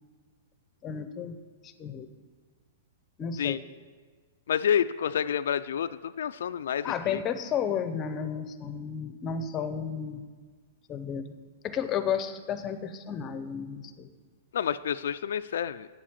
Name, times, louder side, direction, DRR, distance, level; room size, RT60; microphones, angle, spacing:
voice 1, 0.8-1.4 1.6-2.1 3.2-3.6 6.8-10.3 10.9-11.3 11.6-14.1, left 7 dB, 20° left, 10 dB, 0.7 m, -32 dB
voice 2, 4.5-7.2 14.5-15.9, left 8 dB, 75° left, 10 dB, 0.3 m, -29 dB
8.2 x 7.5 x 8.7 m, 1.5 s
hypercardioid pair, 155°, 0 cm